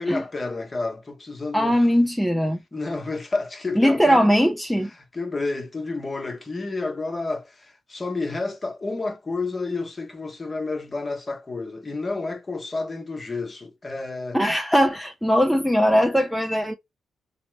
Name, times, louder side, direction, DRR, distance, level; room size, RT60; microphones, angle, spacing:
voice 1, 0.0-1.9 2.7-4.3 4.8-14.4, left 3 dB, 35° left, 0.9 m, -30 dB
voice 2, 1.5-2.6 3.8-4.9 14.3-16.7, equal, ahead, 0.5 m, -20 dB
2.8 x 2.0 x 3.2 m
supercardioid pair, 50°, 0 cm